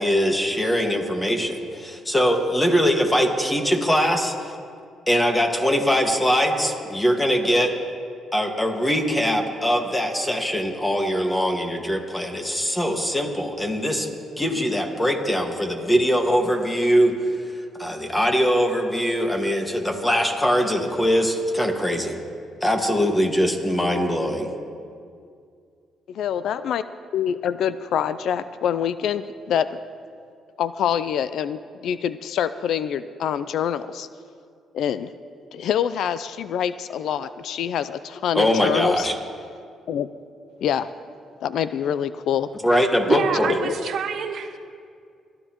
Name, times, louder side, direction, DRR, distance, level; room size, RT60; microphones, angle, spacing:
voice 1, 0.0-4.5 5.1-7.7 8.3-14.1 14.4-17.5 17.8-22.2 22.6-24.5 38.3-39.2 42.6-43.6, equal, 15° left, 3 dB, 1.7 m, -22 dB
voice 2, 26.1-26.8 27.1-29.7 30.6-34.1 34.7-35.1 35.5-39.1 39.9-40.1 40.6-40.9 41.4-42.5 43.1-43.2 43.6-43.8, left 9 dB, 75° left, 14 dB, 0.4 m, -25 dB
voice 3, 43.1-44.6, right 6 dB, 70° right, 6 dB, 0.9 m, -27 dB
22.0 x 12.0 x 3.0 m, 2.2 s
cardioid pair, 90°, 0 cm